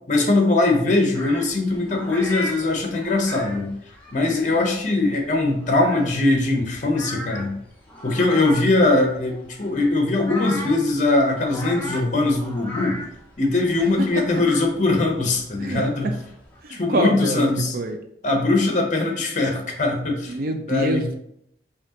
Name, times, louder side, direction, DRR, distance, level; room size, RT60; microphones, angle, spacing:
voice 1, 0.1-3.7 4.1-7.5 8.0-13.0 13.4-16.1 16.7-17.7 18.2-20.4 20.7-21.0, left 2 dB, 45° left, 2 dB, 0.8 m, -21 dB
sound 1, 1.1-16.6, left 1 dB, 10° left, 0.7 m, -38 dB
voice 2, 4.3-4.6 14.0-14.3 15.6-16.1 16.6-17.5 17.7-18.0 20.3-21.2, right 2 dB, 50° right, 5 dB, 0.4 m, -26 dB
5.1 x 2.7 x 2.8 m, 0.74 s
head